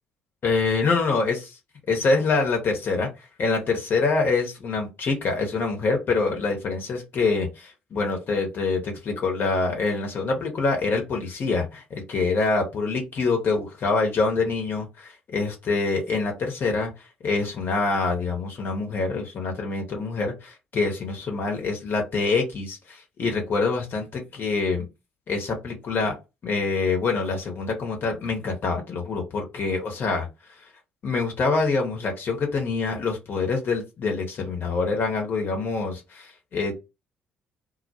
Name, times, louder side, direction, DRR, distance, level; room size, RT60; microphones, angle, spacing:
voice 1, 0.4-1.4 1.9-3.1 3.4-16.9 17.2-24.9 25.3-26.2 26.4-30.3 30.6-30.7 31.0-36.7, left 4 dB, 45° left, 2 dB, 0.8 m, -25 dB
2.2 x 2.1 x 2.8 m, 0.25 s
figure-of-eight pair, 50°, 5 cm